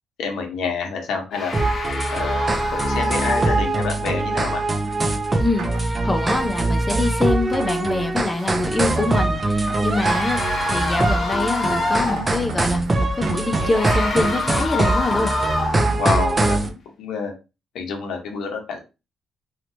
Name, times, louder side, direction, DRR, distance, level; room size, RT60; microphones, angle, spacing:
voice 1, 0.2-1.5 2.1-2.5 2.7-4.6 16.0-17.3 17.7-18.8, left 5 dB, 85° left, 3 dB, 1.0 m, -27 dB
sound 1, 1.3-4.1 8.3-8.5 9.7-12.4 13.5-16.0, left 4 dB, 60° left, 0.8 m, -28 dB
sound 2, 1.5-16.7, right 2 dB, 30° right, 0.7 m, -22 dB
Rain, 3.4-16.7, right 4 dB, 80° right, 0.8 m, -40 dB
voice 2, 5.4-10.4 10.7-15.3, left 2 dB, 25° left, 5 dB, 0.7 m, -25 dB
3.2 x 2.9 x 2.6 m, 0.28 s
cardioid pair, 85°, 0 cm